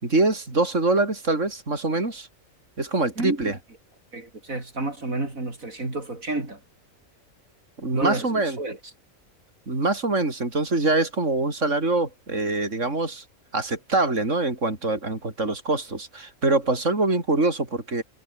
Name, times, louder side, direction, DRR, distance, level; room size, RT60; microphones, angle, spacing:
voice 1, 0.0-2.3 2.8-3.6 7.8-8.6 9.7-13.2 13.5-18.0, right 2 dB, 60° right, 5.0 m, -24 dB
voice 2, 4.1-6.6 7.9-8.8, right 2 dB, 80° right, 5.6 m, -30 dB
omnidirectional pair, 1.4 m